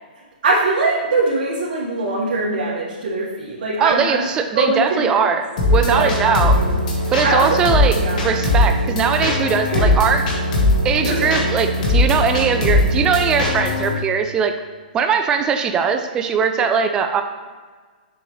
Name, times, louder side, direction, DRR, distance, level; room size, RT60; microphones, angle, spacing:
voice 1, 0.4-4.2 4.5-5.3 5.8-6.7 7.2-7.6 7.9-8.3 9.7-9.9 11.0-11.4 16.5-16.7, right 2 dB, 70° right, -6 dB, 1.5 m, -22 dB
voice 2, 3.8-5.4 5.7-6.6 7.1-10.2 10.8-14.5 14.9-17.2, right 6 dB, 15° right, 7 dB, 0.3 m, -20 dB
sound 1, 5.6-13.9, left 2 dB, 55° left, 1.6 m, -19 dB
7.0 x 5.2 x 3.1 m, 1.4 s
hypercardioid pair, 160°, 5 cm